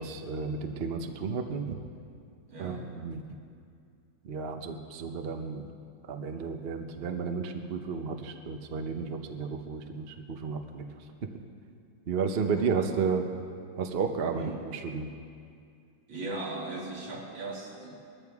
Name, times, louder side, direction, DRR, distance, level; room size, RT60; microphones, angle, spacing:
voice 1, 0.0-1.8 2.6-3.2 4.2-5.7 6.1-10.8 12.1-13.2 13.8-15.1, right 5 dB, 50° right, 5 dB, 0.7 m, -32 dB
voice 2, 2.5-2.9 12.5-13.0 14.3-14.6 16.1-18.0, right 2 dB, 75° right, -3 dB, 3.1 m, -39 dB
20.5 x 14.0 x 3.6 m, 2.3 s
omnidirectional pair, 2.1 m